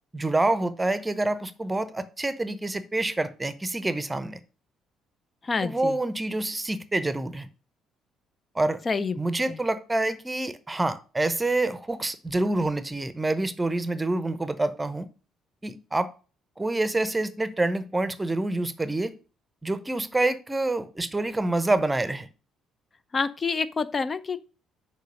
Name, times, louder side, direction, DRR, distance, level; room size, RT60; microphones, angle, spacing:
voice 1, 0.1-4.4 5.6-7.5 8.5-8.8 9.1-15.1 15.6-16.1 16.6-19.1 19.6-22.3, right 2 dB, 15° right, 0.8 m, -27 dB
voice 2, 5.4-6.0 8.9-9.2 9.5-9.6 23.1-24.5, left 4 dB, 30° left, 0.7 m, -28 dB
6.7 x 4.9 x 6.3 m
figure-of-eight pair, 45°, 0 cm